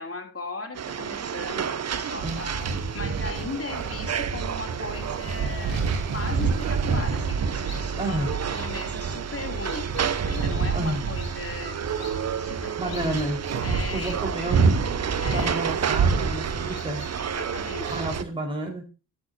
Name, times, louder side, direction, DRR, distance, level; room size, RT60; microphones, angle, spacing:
voice 1, 0.0-5.8 6.1-11.8 12.4-13.1 13.6-14.7 15.2-15.6 17.2-18.1, left 3 dB, 30° left, 4 dB, 3.3 m, -38 dB
sound 1, 0.7-18.2, right 8 dB, 35° right, 0.7 m, -32 dB
sound 2, 2.2-18.2, right 5 dB, 75° right, 2.8 m, -29 dB
sound 3, 7.6-18.1, left 5 dB, 80° left, 2.3 m, -47 dB
voice 2, 8.0-8.3 10.7-11.0 12.8-13.4 13.9-14.8 15.3-17.0 17.9-18.9, right 1 dB, 10° right, -1 dB, 4.7 m, -30 dB
12.0 x 8.8 x 2.8 m, 0.32 s
supercardioid pair, 50°, 44 cm